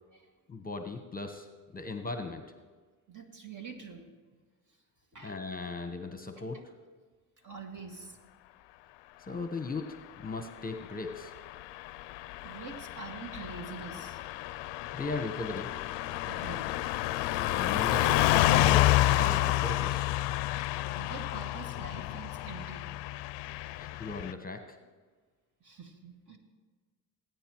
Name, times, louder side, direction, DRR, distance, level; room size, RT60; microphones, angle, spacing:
voice 1, 0.5-1.5 1.7-2.4 5.2-6.7 9.2-11.3 14.9-15.7 17.4-18.9 19.2-20.1 23.7-24.8, left 3 dB, 20° left, 7 dB, 1.1 m, -37 dB
voice 2, 3.1-4.1 4.7-4.8 5.1-5.5 7.4-8.2 12.4-14.3 16.3-16.8 20.6-22.9 25.6-26.4, right 5 dB, 45° right, 3 dB, 2.3 m, -45 dB
Car passing by / Truck, 11.3-24.3, left 16 dB, 70° left, 0.5 m, -29 dB
19.0 x 9.3 x 3.0 m, 1.4 s
supercardioid pair, 70°, 44 cm